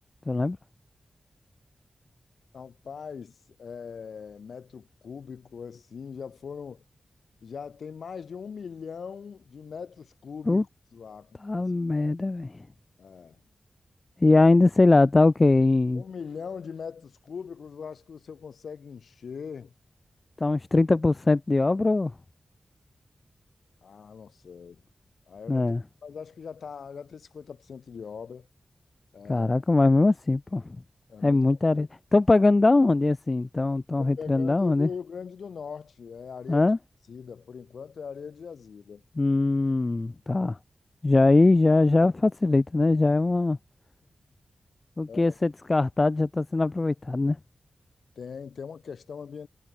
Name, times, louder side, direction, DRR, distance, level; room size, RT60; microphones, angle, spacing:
voice 1, 0.3-0.6 10.5-10.6 11.4-12.6 14.2-16.0 20.4-22.1 25.5-25.8 29.3-30.6 31.2-34.9 36.5-36.8 39.2-40.6 41.0-43.6 45.0-47.4, left 2 dB, 30° left, 0.4 m, -21 dB
voice 2, 2.5-6.8 7.4-10.7 10.9-11.7 13.0-13.4 14.2-14.4 15.9-19.7 23.8-24.8 25.3-25.8 26.0-28.5 29.1-29.5 31.1-31.4 31.7-31.9 34.0-36.7 37.1-39.0 45.1-45.4 48.2-49.5, left 6 dB, 85° left, 5.4 m, -41 dB
wide cardioid pair, 130°, 0 cm